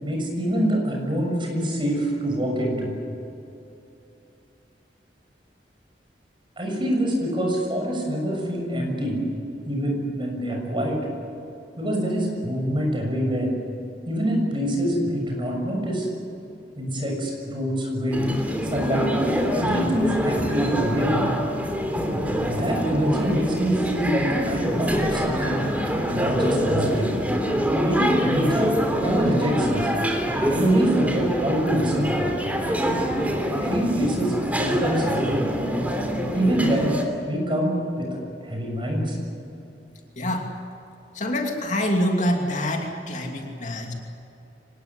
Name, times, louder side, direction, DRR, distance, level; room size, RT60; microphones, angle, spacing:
voice 1, 0.0-2.9 6.6-9.2 9.6-11.0 11.8-13.5 14.1-16.1 16.7-18.4 18.6-19.2 19.5-21.1 22.5-25.7 26.1-27.1 27.8-28.7 29.0-29.9 30.5-32.3 33.6-35.3 36.3-36.9 37.3-39.2, equal, 30° right, 1 dB, 6.6 m, -25 dB
sound 1, 18.1-37.0, equal, 10° right, 3.1 m, -25 dB
voice 2, 40.2-40.5 41.1-43.9, equal, 45° left, 2 dB, 2.7 m, -25 dB
25.0 x 19.5 x 10.0 m, 2.8 s
head